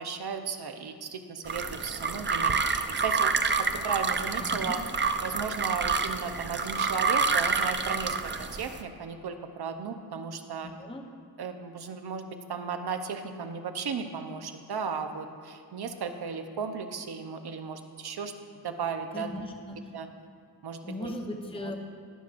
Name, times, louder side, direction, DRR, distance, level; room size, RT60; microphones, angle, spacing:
voice 1, 0.0-3.3 3.6-4.8 5.2-10.7 11.4-18.3 18.6-19.3 19.9-20.1 20.6-21.1 21.6-21.7, right 5 dB, 70° right, 7 dB, 0.7 m, -35 dB
sound 1, 1.4-8.8, right 5 dB, 30° right, 0.4 m, -28 dB
voice 2, 4.4-4.8 10.6-11.0 19.1-19.8 20.8-21.8, left 1 dB, 15° left, 2 dB, 0.8 m, -38 dB
17.0 x 6.0 x 2.5 m, 2.2 s
wide cardioid pair, 75°, 40 cm